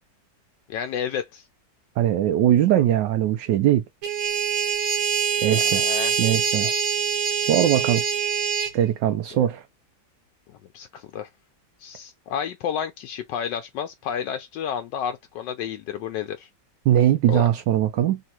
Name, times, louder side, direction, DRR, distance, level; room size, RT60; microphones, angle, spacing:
voice 1, 0.7-1.5 5.4-6.2 9.3-9.4 10.5-11.3 11.8-16.5 17.3-17.5, left 8 dB, 80° left, 1.2 m, -31 dB
voice 2, 2.0-3.8 5.4-5.9 6.2-6.7 7.4-8.0 8.7-9.6 16.9-18.2, right 11 dB, 85° right, 1.3 m, -20 dB
sound 1, 4.0-8.7, right 7 dB, 55° right, 1.2 m, -24 dB
3.6 x 2.5 x 4.3 m
omnidirectional pair, 1.9 m